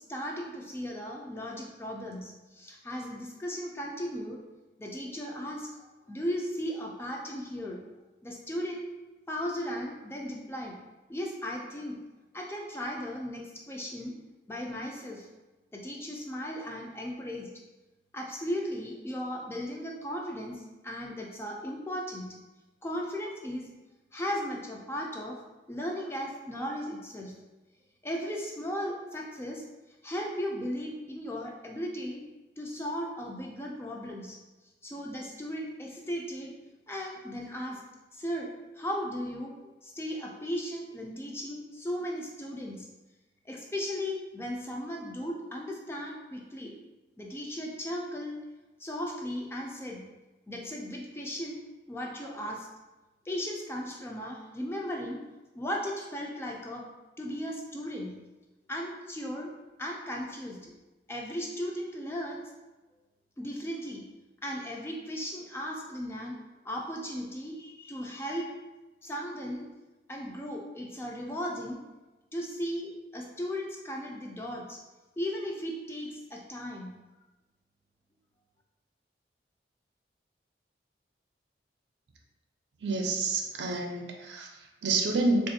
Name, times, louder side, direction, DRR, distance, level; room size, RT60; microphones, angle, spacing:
voice 1, 0.1-4.4 4.8-5.7 6.1-7.8 8.2-8.9 9.3-10.7 11.1-12.0 12.3-14.2 14.5-15.3 15.7-17.5 18.1-22.3 22.8-23.7 24.1-25.4 25.7-27.3 28.0-29.6 30.0-32.2 32.6-34.4 34.8-36.5 36.9-37.8 38.1-42.9 43.5-46.7 47.2-48.4 48.8-50.0 50.5-51.6 51.9-52.7 53.2-55.2 55.5-56.9 57.2-58.1 58.7-59.5 59.8-60.7 61.1-62.5 63.4-64.0 64.4-68.5 69.0-69.7 70.1-71.8 72.3-74.8 75.2-76.9, equal, 15° left, -1 dB, 0.3 m, -36 dB
voice 2, 82.8-85.5, right 3 dB, 85° right, 3 dB, 0.5 m, -29 dB
3.6 x 2.4 x 2.7 m, 1.1 s
head